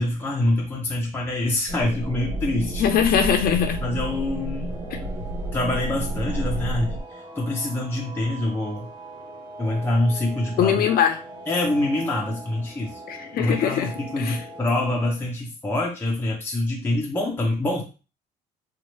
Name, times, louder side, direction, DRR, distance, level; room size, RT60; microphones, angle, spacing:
voice 1, 0.0-2.8 3.8-4.7 5.5-8.9 9.6-10.8 11.5-13.0 13.4-17.8, left 1 dB, 15° left, -3 dB, 0.7 m, -25 dB
sound 1, 1.7-7.0, right 1 dB, 80° right, 1.2 m, -30 dB
sound 2, 2.4-15.1, right 2 dB, 25° right, 1.1 m, -42 dB
voice 2, 2.8-3.8 4.9-5.0 10.6-11.2 13.1-13.9 14.2-14.4, left 8 dB, 60° left, 6 dB, 0.7 m, -21 dB
2.9 x 2.5 x 3.0 m, 0.34 s
cardioid pair, 110°, 17 cm